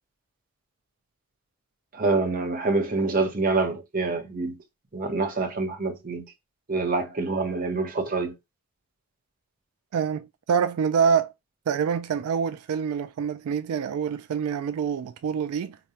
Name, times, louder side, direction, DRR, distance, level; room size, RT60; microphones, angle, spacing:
voice 1, 1.9-4.6 4.9-6.2 6.7-8.3, right 3 dB, 40° right, 0.7 m, -26 dB
voice 2, 9.9-11.3 11.7-15.8, right 7 dB, 85° right, 0.3 m, -26 dB
4.9 x 2.1 x 2.8 m
head